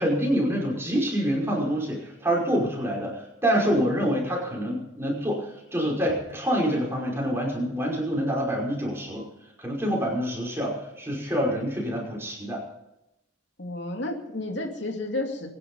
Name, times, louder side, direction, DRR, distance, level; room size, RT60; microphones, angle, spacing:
voice 1, 0.0-3.1 3.4-9.3 9.6-12.6, equal, 15° right, -2 dB, 5.5 m, -26 dB
voice 2, 13.6-15.5, left 2 dB, 65° left, 2 dB, 2.7 m, -31 dB
23.0 x 10.5 x 5.5 m, 0.89 s
head